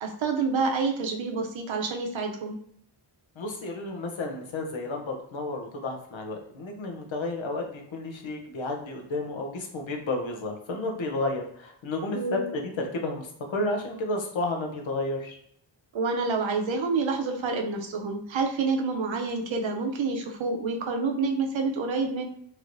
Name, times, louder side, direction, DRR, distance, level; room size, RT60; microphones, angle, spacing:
voice 1, 0.0-2.6 12.1-12.5 15.9-22.3, right 4 dB, 75° right, 3 dB, 0.7 m, -28 dB
voice 2, 3.4-15.4, left 2 dB, 75° left, 2 dB, 0.8 m, -32 dB
3.1 x 3.0 x 2.5 m, 0.67 s
wide cardioid pair, 140°, 47 cm